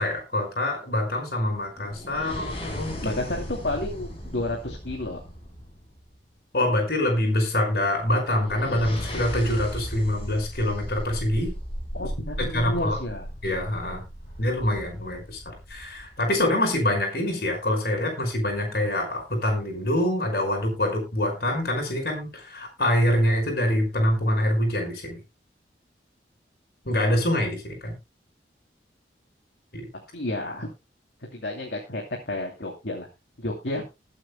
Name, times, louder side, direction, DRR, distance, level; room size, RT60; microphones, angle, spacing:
voice 1, 0.0-3.1 6.5-11.5 12.5-13.0 13.4-14.0 14.4-25.2 26.9-27.9 29.7-29.9, left 1 dB, 60° left, 1 dB, 5.3 m, -25 dB
sound 1, 1.8-6.1 8.3-16.2, equal, 30° left, 4.8 m, -36 dB
voice 2, 3.0-5.2 11.9-13.3 30.1-30.7 31.3-33.1 33.4-33.8, left 1 dB, 75° left, 1 dB, 2.7 m, -31 dB
21.0 x 8.7 x 2.2 m, 0.25 s
head